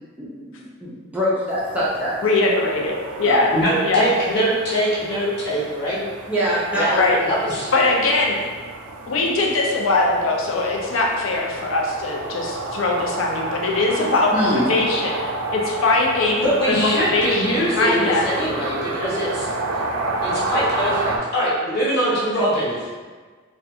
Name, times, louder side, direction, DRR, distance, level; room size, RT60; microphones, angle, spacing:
voice 1, 0.8-2.1 2.4-2.5 3.3-3.4 6.3-7.0 14.3-14.7, equal, 5° right, -8 dB, 0.3 m, -23 dB
sound 1, 1.5-21.2, right 2 dB, 85° right, 0.3 m, -30 dB
voice 2, 2.2-3.5 3.8-4.1 7.0-7.2 7.7-8.3 9.1-15.1 15.5-18.3, left 3 dB, 75° left, -1 dB, 0.4 m, -21 dB
voice 3, 3.5-6.0 6.7-7.7 14.9-15.0 16.4-19.5 20.2-22.8, equal, 55° left, -8 dB, 0.8 m, -22 dB
2.4 x 2.1 x 2.7 m, 1.4 s
head